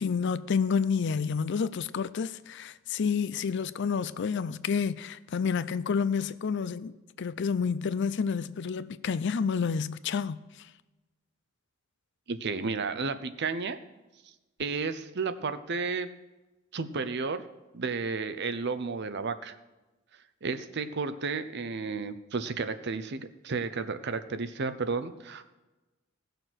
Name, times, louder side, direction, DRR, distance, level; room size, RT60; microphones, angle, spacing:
voice 1, 0.0-10.7, left 6 dB, 55° left, 0.4 m, -29 dB
voice 2, 12.3-13.8 14.6-16.1 16.7-17.4 17.7-19.6 20.4-25.5, right 4 dB, 55° right, 0.7 m, -32 dB
16.5 x 6.7 x 6.2 m
head